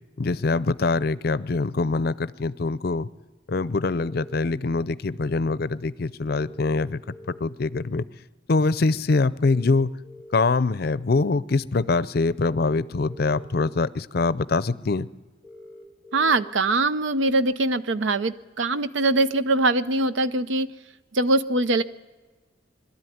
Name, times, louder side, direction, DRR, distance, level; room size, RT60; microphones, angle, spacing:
voice 1, 0.2-3.1 3.5-8.1 8.5-9.9 10.3-15.1, left 3 dB, 55° left, 16 dB, 0.5 m, -24 dB
sound 1, 4.0-4.4 6.4-7.4 9.4-10.4 12.4-13.4 15.4-16.4, left 1 dB, 25° right, 3.6 m, -46 dB
voice 2, 16.1-20.7 21.1-21.8, right 2 dB, 80° right, 13 dB, 0.7 m, -22 dB
21.5 x 13.0 x 9.3 m, 1.3 s
head